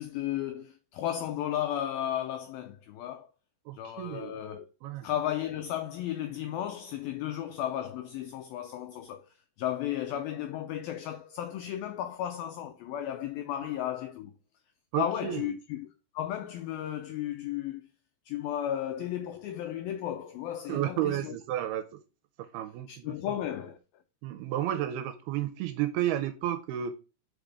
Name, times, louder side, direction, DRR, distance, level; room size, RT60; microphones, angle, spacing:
voice 1, 0.0-3.3 3.7-4.7 5.0-9.3 9.6-14.3 14.9-15.9 16.1-17.9 18.3-21.4 22.9-23.8, left 11 dB, 85° left, 2.1 m, -34 dB
voice 2, 3.7-4.4 4.8-5.1 14.9-15.5 20.7-21.8 22.4-23.4 24.2-26.9, right 12 dB, 85° right, 2.4 m, -32 dB
5.3 x 5.1 x 4.8 m
omnidirectional pair, 4.9 m